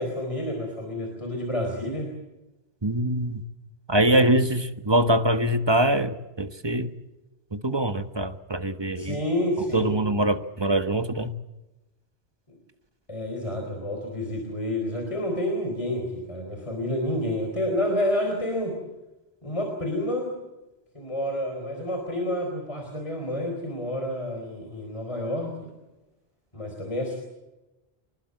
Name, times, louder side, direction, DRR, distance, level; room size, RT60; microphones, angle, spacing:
voice 1, 0.0-2.1 4.1-4.6 9.0-9.9 13.1-18.8 19.4-20.3 20.9-25.7 26.5-27.2, left 1 dB, 30° left, 2 dB, 4.5 m, -29 dB
voice 2, 2.8-3.4 3.9-6.9 7.5-9.2 9.7-11.3, right 1 dB, 25° right, 8 dB, 1.3 m, -23 dB
26.0 x 20.5 x 7.7 m, 1.0 s
omnidirectional pair, 1.1 m